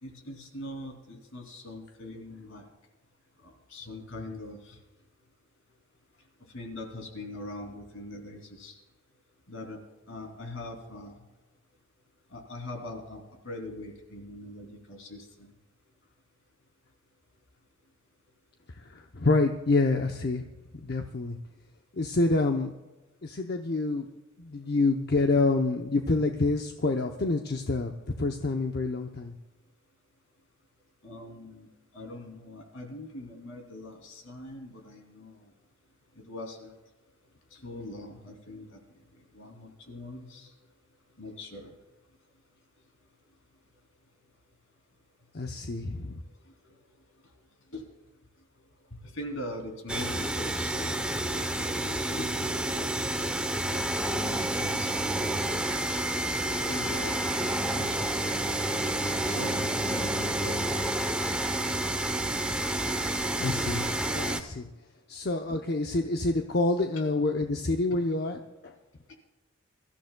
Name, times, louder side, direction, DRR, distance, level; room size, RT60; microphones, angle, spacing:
voice 1, 0.0-2.7 3.4-4.8 6.4-8.8 9.5-11.2 12.3-15.5 31.0-35.5 36.1-36.8 37.5-38.8 39.1-40.5 41.2-41.7 46.5-46.8 47.7-47.9 48.9-53.1 53.6-54.9 56.6-57.1 57.5-58.1 59.3-60.7 69.1-69.2, left 1 dB, 65° left, 3 dB, 2.9 m, -42 dB
voice 2, 18.8-20.5 20.7-21.4 21.9-22.7 23.2-24.1 24.4-27.9 28.2-29.3 45.3-46.2 63.4-64.7 65.1-68.4 68.6-68.7, left 3 dB, 50° left, 4 dB, 0.7 m, -27 dB
sound 1, 49.9-64.4, right 1 dB, 5° right, 0.7 m, -29 dB
24.0 x 13.0 x 2.3 m, 1.2 s
head